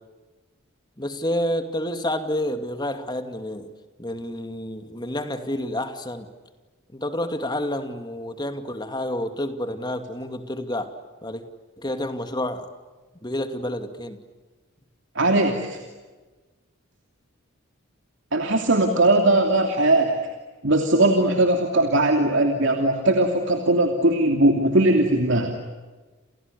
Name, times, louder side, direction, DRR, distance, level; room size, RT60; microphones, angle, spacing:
voice 1, 1.0-3.7 4.0-6.3 6.9-10.9 11.2-11.4 11.8-12.7 13.2-14.2, left 1 dB, 20° left, 7 dB, 2.5 m, -29 dB
voice 2, 15.1-15.8 18.3-20.3 20.6-25.6, right 2 dB, 60° right, 4 dB, 2.9 m, -19 dB
30.0 x 29.0 x 6.9 m, 1.3 s
head